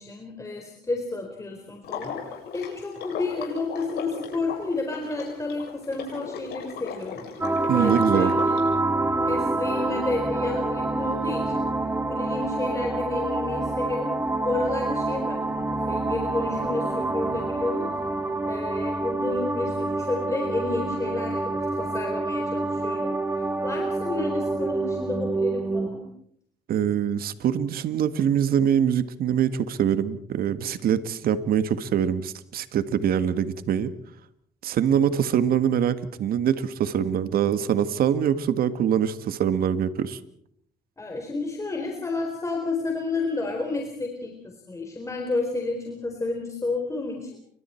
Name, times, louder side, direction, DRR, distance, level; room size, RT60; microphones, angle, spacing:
voice 1, 0.0-2.2 2.5-7.3 7.7-8.6 9.2-11.7 12.1-14.2 14.4-17.9 18.4-26.0 41.0-47.3, left 3 dB, 15° left, 2 dB, 4.2 m, -31 dB
Water / Liquid, 1.8-8.6, left 7 dB, 70° left, 7.4 m, -37 dB
sound 1, 7.4-25.9, right 2 dB, 10° right, 2.0 m, -27 dB
voice 2, 7.7-8.3 26.7-33.9 34.6-40.2, right 9 dB, 60° right, 12 dB, 1.7 m, -24 dB
30.0 x 24.5 x 4.5 m, 0.67 s
cardioid pair, 110°, 17 cm